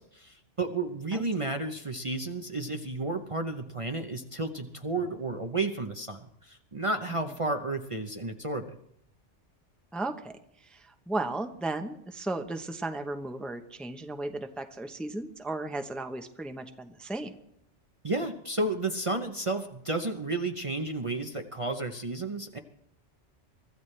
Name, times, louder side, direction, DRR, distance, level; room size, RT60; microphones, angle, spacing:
voice 1, 0.0-8.8 18.0-22.6, right 2 dB, 30° right, 5 dB, 0.8 m, -32 dB
voice 2, 9.9-10.3 10.6-17.4, right 2 dB, ahead, 6 dB, 0.7 m, -35 dB
24.0 x 14.0 x 3.3 m, 0.73 s
omnidirectional pair, 1.2 m